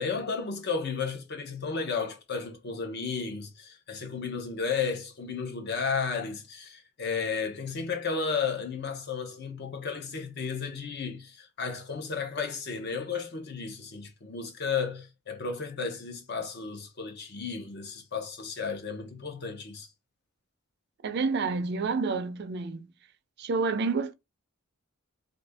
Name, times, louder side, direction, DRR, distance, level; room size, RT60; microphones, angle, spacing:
voice 1, 0.0-19.9, left 5 dB, 55° left, 0.7 m, -33 dB
voice 2, 21.0-22.9 23.4-24.1, right 4 dB, 55° right, 0.4 m, -29 dB
2.7 x 2.6 x 3.3 m
head